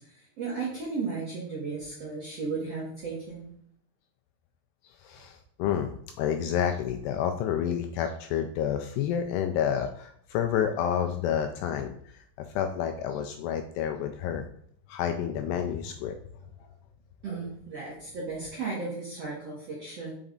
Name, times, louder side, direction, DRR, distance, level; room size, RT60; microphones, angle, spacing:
voice 1, 0.0-3.5 17.2-20.1, right 4 dB, 75° right, -5 dB, 1.4 m, -35 dB
voice 2, 4.8-12.2 12.5-14.5 14.9-16.2, left 9 dB, 85° left, 6 dB, 2.4 m, -29 dB
5.9 x 5.3 x 3.7 m, 0.66 s
omnidirectional pair, 5.1 m